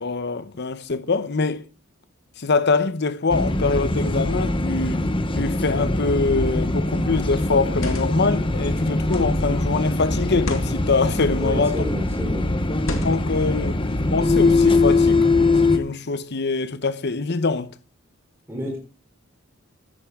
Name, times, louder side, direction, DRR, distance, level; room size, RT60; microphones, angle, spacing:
voice 1, 0.0-1.6 2.4-5.1 5.4-11.8 13.0-15.3 15.7-17.7, left 4 dB, 55° left, 0.8 m, -24 dB
sound 1, 3.3-15.8, left 2 dB, 25° left, 1.1 m, -22 dB
sound 2, 6.4-6.7 7.6-8.3 9.1-9.5 10.3-10.7 11.6-12.0 12.8-13.4, left 1 dB, 85° left, 2.3 m, -32 dB
voice 2, 11.4-12.5 18.5-18.8, equal, 15° right, 3.7 m, -30 dB
15.0 x 11.5 x 3.6 m
head